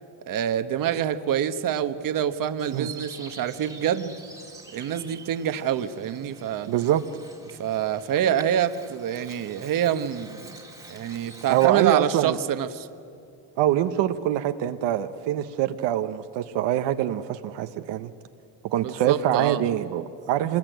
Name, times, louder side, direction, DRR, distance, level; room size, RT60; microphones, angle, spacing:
voice 1, 0.3-4.2 4.7-6.7 7.6-10.5 10.9-12.9 18.8-19.6, right 9 dB, 50° right, 11 dB, 1.2 m, -26 dB
Bird vocalization bird call bird song, 2.6-11.7, right 3 dB, 10° right, 1.9 m, -46 dB
voice 2, 6.7-7.0 11.5-12.4 13.6-18.1 18.7-20.6, right 12 dB, 75° right, 9 dB, 1.0 m, -24 dB
25.5 x 21.5 x 9.2 m, 2.5 s
cardioid pair, 145°, 43 cm